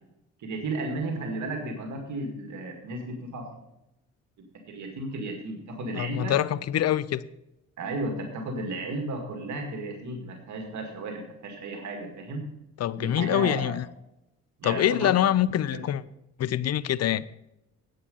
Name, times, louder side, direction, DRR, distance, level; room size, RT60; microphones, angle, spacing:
voice 1, 0.4-3.5 4.4-6.4 7.8-12.4 13.0-13.7 14.6-15.1 15.7-15.8, right 2 dB, 70° right, 2.1 m, -34 dB
voice 2, 5.9-7.2 12.8-13.8 14.6-16.0 16.4-17.2, left 11 dB, 55° left, 0.6 m, -25 dB
10.0 x 8.7 x 5.4 m
cardioid pair, 90°, 30 cm